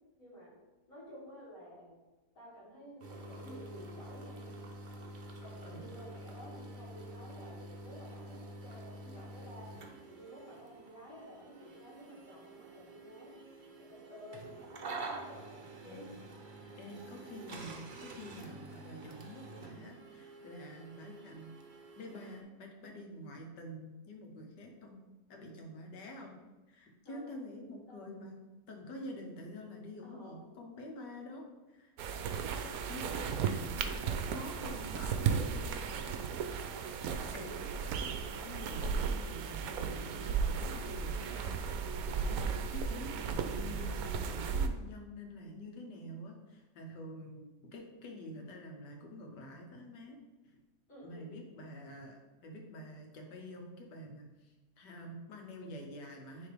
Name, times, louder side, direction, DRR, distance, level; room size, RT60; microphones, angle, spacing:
voice 1, 0.2-0.5 0.9-2.0 2.3-4.5 5.4-9.7 10.1-13.4 13.8-14.5 15.0-16.1 27.0-27.2 27.9-28.1 30.0-30.4 32.1-33.4 33.8-34.6 36.4-37.7 50.9-51.3, equal, 50° left, -7 dB, 2.6 m, -52 dB
sound 1, 3.0-22.4, right 2 dB, 50° right, 0.5 m, -48 dB
voice 2, 16.8-21.5 22.0-25.0 25.3-26.4 26.7-28.4 28.7-31.9 32.2-32.5 32.9-33.1 33.4-35.7 37.3-37.6 38.4-41.6 42.1-50.2 51.0-56.5, left 1 dB, 85° left, 1 dB, 1.7 m, -47 dB
sound 2, 32.0-44.7, right 6 dB, 70° right, 0.9 m, -35 dB
9.8 x 3.5 x 3.4 m, 1.1 s
omnidirectional pair, 1.8 m